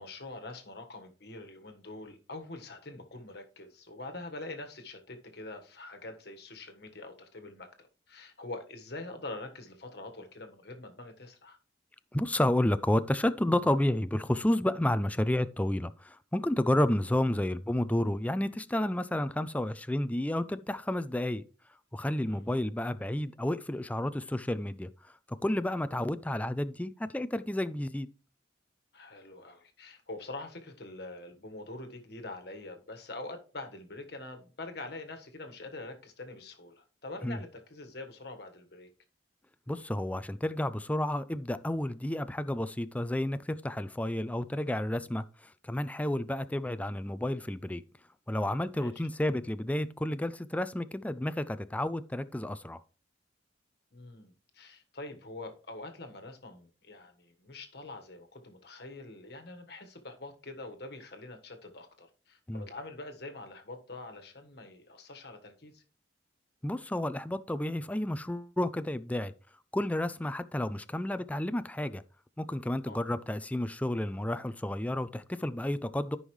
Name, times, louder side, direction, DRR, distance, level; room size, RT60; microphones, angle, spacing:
voice 1, 0.0-7.7 8.1-11.6 22.2-22.5 28.9-38.9 48.7-48.9 53.9-65.8 72.8-73.0, left 2 dB, 60° left, 1.5 m, -44 dB
voice 2, 12.1-21.4 21.9-24.9 25.4-28.1 37.2-37.4 39.7-45.2 45.6-47.8 48.3-52.8 62.5-62.6 66.6-69.3 69.7-72.0 72.4-76.2, left 1 dB, 10° left, 0.4 m, -31 dB
13.5 x 5.5 x 3.2 m
head